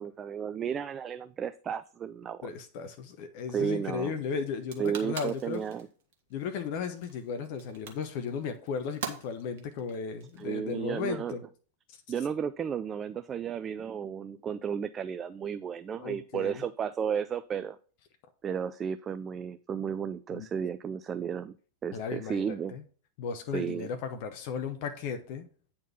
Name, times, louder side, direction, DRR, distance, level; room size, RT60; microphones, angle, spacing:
voice 1, 0.0-2.5 3.5-4.1 4.8-5.9 10.4-11.3 12.1-17.8 18.4-21.5 21.8-22.7 23.5-23.9, right 8 dB, 25° right, 12 dB, 0.4 m, -33 dB
voice 2, 2.4-5.6 6.3-11.4 11.9-12.0 16.0-16.6 20.3-20.5 21.9-22.8 23.2-25.5, left 6 dB, 45° left, 7 dB, 0.9 m, -35 dB
sound 1, 4.5-10.9, right 6 dB, 55° right, 1.5 m, -43 dB
9.0 x 4.4 x 5.7 m, 0.42 s
figure-of-eight pair, 90°, 0 cm